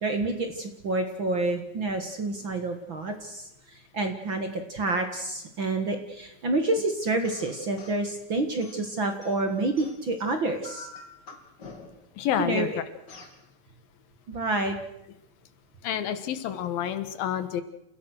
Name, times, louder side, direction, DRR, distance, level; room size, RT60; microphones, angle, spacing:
voice 1, 0.0-10.9 12.4-12.7 14.3-14.8, right 2 dB, 45° right, 6 dB, 1.8 m, -28 dB
sound 1, 7.2-8.0 8.6-10.2 10.6-12.1 13.1-13.4, left 3 dB, 35° left, 2.7 m, -47 dB
voice 2, 12.2-12.8 15.8-17.6, left 10 dB, 80° left, 11 dB, 3.2 m, -29 dB
29.0 x 16.5 x 6.4 m, 0.83 s
omnidirectional pair, 4.1 m